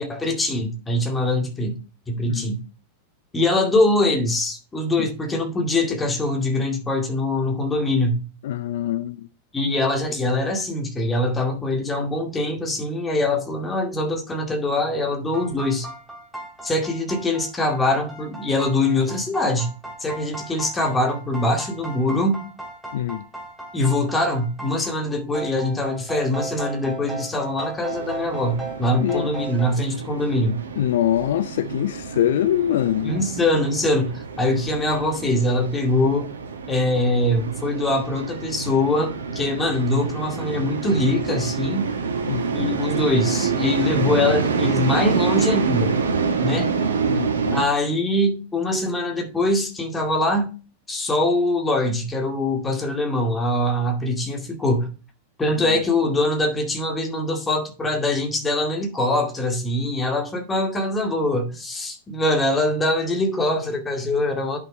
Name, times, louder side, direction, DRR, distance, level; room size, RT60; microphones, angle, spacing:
voice 1, 0.0-1.8 2.1-2.6 3.3-8.2 9.5-15.9 16.6-19.7 20.0-22.5 23.7-30.6 33.0-36.3 36.7-41.9 42.5-46.0 46.4-46.7 47.5-50.5 50.9-54.9 55.4-64.6, left 1 dB, 15° left, 2.3 m, -23 dB
voice 2, 8.4-9.3 22.9-23.3 29.0-29.3 30.7-33.2 42.3-42.6 47.1-47.6 55.5-55.8, left 12 dB, 55° left, 0.4 m, -24 dB
sound 1, 15.3-29.7, right 2 dB, ahead, 2.2 m, -36 dB
sound 2, 27.9-47.6, right 5 dB, 70° right, 1.7 m, -27 dB
10.0 x 6.1 x 3.2 m
figure-of-eight pair, 90°, 0 cm